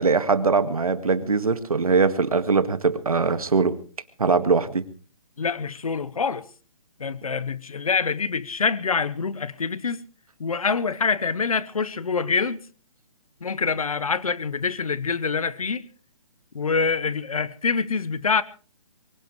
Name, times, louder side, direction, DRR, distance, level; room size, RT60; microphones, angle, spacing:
voice 1, 0.0-3.8 4.2-4.8, right 4 dB, 90° right, 1.8 m, -21 dB
voice 2, 5.4-6.4 7.0-10.0 10.4-12.6 13.4-15.8 16.5-18.4, left 5 dB, 85° left, 1.1 m, -25 dB
23.5 x 17.5 x 3.2 m
hypercardioid pair, 150°, 18 cm